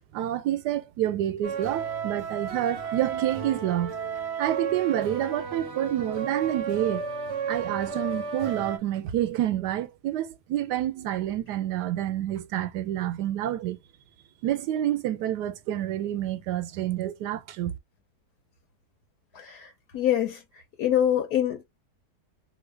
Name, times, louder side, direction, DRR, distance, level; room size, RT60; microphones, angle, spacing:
voice 1, 0.1-3.9 4.4-7.0 7.5-13.8 14.4-17.8, right 12 dB, 90° right, 1.2 m, -28 dB
sound 1, 1.4-8.8, right 6 dB, 55° right, 0.8 m, -33 dB
voice 2, 19.3-19.7 19.9-20.4 20.8-21.6, left 10 dB, 70° left, 1.3 m, -24 dB
2.7 x 2.7 x 3.2 m
omnidirectional pair, 1.7 m